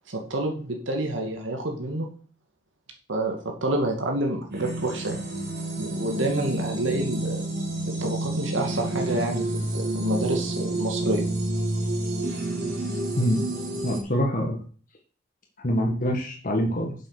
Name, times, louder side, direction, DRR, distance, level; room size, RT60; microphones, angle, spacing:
voice 1, 0.1-2.1 3.1-5.3 5.8-7.4 8.0-11.2, right 1 dB, 90° right, 2 dB, 2.3 m, -28 dB
sound 1, 4.5-14.0, right 2 dB, 55° right, 3.6 m, -29 dB
voice 2, 13.8-14.6 15.6-16.9, equal, 45° left, 1 dB, 1.7 m, -25 dB
7.8 x 7.8 x 6.6 m, 0.42 s
head